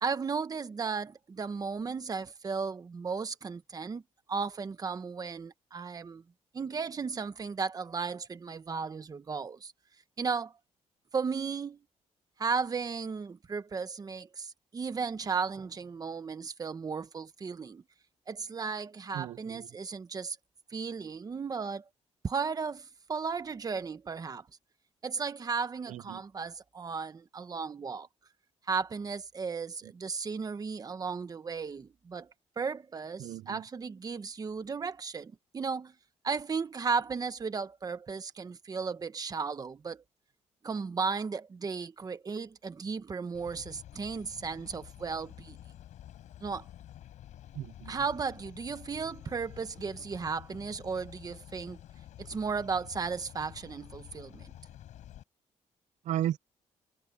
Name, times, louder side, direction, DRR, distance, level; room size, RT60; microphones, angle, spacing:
voice 1, 0.0-4.0 4.3-6.2 6.5-9.7 10.2-10.5 11.1-11.8 12.4-17.8 18.3-20.4 20.7-21.8 22.2-24.5 25.0-28.1 28.7-32.3 32.6-35.9 36.2-40.0 40.6-45.6 46.4-46.6 47.9-51.8 52.2-54.5, right 5 dB, 30° right, 1.3 m, -35 dB
voice 2, 19.1-19.7 25.9-26.2 29.8-29.9 33.2-33.6 47.5-48.0 56.0-56.4, right 12 dB, 80° right, 0.5 m, -35 dB
sound 1, 43.3-55.2, left 12 dB, 90° left, 5.5 m, -50 dB
cardioid pair, 140°, 12 cm